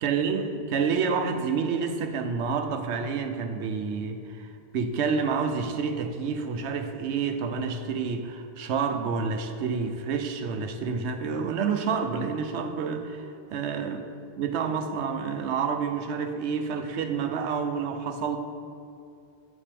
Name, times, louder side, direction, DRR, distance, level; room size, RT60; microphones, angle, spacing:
voice 1, 0.0-14.0 14.4-18.4, right 5 dB, 85° right, 7 dB, 0.9 m, -29 dB
8.6 x 7.4 x 3.4 m, 2.4 s
omnidirectional pair, 1.1 m